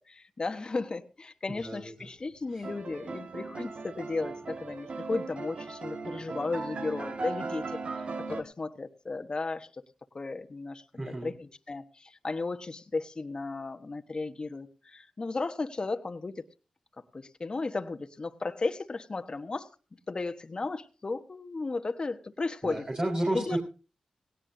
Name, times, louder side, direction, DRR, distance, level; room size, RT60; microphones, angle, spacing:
voice 1, 0.1-9.7 10.1-16.4 17.1-19.7 20.1-22.9 23.3-23.6, left 3 dB, 45° left, 8 dB, 1.2 m, -35 dB
voice 2, 1.6-1.9 2.5-2.6 11.0-11.3 22.6-23.6, right 1 dB, 45° right, -1 dB, 4.3 m, -31 dB
sound 1, 2.6-8.4, right 3 dB, 65° right, 1.9 m, -38 dB
17.5 x 17.5 x 2.7 m, 0.33 s
cardioid pair, 45°, 2 cm